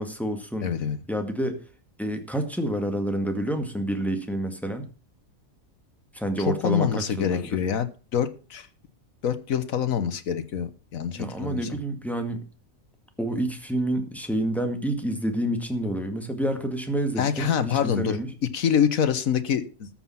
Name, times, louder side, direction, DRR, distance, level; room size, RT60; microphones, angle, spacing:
voice 1, 0.0-0.7 1.1-1.6 2.0-4.9 6.1-7.6 11.2-12.4 13.2-18.3, right 1 dB, ahead, 5 dB, 1.9 m, -28 dB
voice 2, 0.6-1.0 6.4-8.7 9.2-11.7 17.2-18.2 18.5-19.9, left 8 dB, 75° left, 11 dB, 1.6 m, -26 dB
13.5 x 7.4 x 5.8 m, 0.35 s
omnidirectional pair, 1.4 m